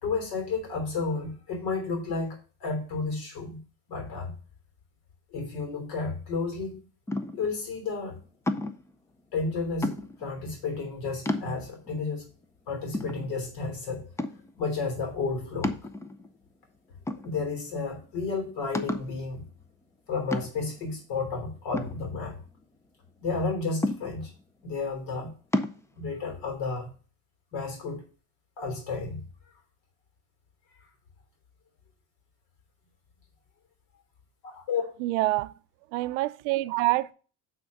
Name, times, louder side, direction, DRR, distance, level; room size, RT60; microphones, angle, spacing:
voice 1, 0.0-3.6 3.9-4.3 5.3-6.8 7.3-8.2 9.3-12.2 12.7-14.0 14.6-15.7 17.2-19.4 20.1-22.4 23.2-24.3 24.6-25.3 26.0-26.9 27.5-28.0 28.6-29.2 34.4-34.8, left 4 dB, 65° left, 3.2 m, -32 dB
sound 1, 7.1-7.5 8.5-8.9 9.8-10.3 10.8-10.9 11.3-11.9 12.4-12.5 12.9-13.7 14.2-14.6 15.6-16.4 17.1-17.7 18.0-18.1 18.7-19.2 20.3-20.8 21.7-22.6 23.8-24.4 25.5-25.8, left 2 dB, 10° left, 0.4 m, -31 dB
voice 2, 35.0-35.5 35.9-37.1, right 19 dB, 80° right, 0.6 m, -26 dB
8.6 x 3.8 x 5.3 m
supercardioid pair, 125°, 38 cm